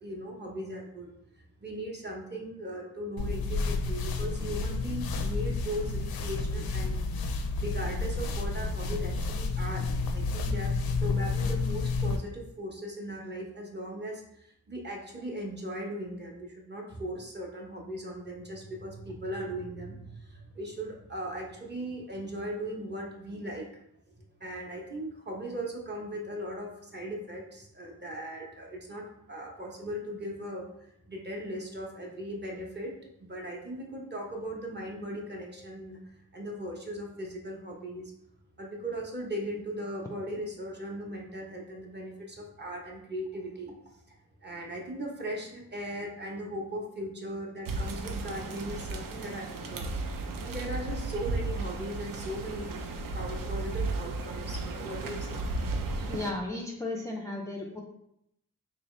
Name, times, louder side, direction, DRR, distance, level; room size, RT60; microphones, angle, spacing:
voice 1, 0.0-7.0 7.6-10.7 11.0-23.7 24.2-32.9 33.2-38.1 38.6-43.7 44.4-49.9 50.4-52.7 53.1-55.4, equal, 30° right, -1 dB, 0.8 m, -38 dB
sound 1, 3.2-12.2, left 3 dB, 80° left, 0.5 m, -30 dB
sound 2, 47.7-56.3, right 3 dB, 65° right, 0.5 m, -34 dB
voice 2, 56.1-57.8, left 2 dB, 10° left, -1 dB, 0.3 m, -35 dB
3.7 x 2.7 x 3.1 m, 0.77 s
wide cardioid pair, 100°, 36 cm